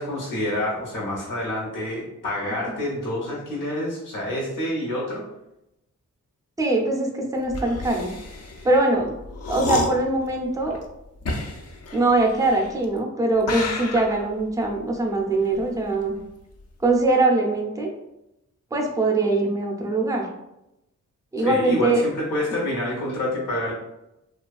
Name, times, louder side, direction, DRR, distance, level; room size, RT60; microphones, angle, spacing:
voice 1, 0.0-5.2 21.4-23.7, left 1 dB, 85° left, -4 dB, 0.9 m, -28 dB
voice 2, 6.6-8.1 8.6-9.1 9.5-10.8 11.9-16.2 16.8-17.9 18.7-20.3 21.3-22.0, right 2 dB, 10° right, 0 dB, 0.4 m, -22 dB
sound 1, 7.4-13.0 13.4-16.3 16.6-17.0, left 2 dB, 55° left, 0.4 m, -32 dB
2.6 x 2.4 x 2.3 m, 0.88 s
wide cardioid pair, 95°, 31 cm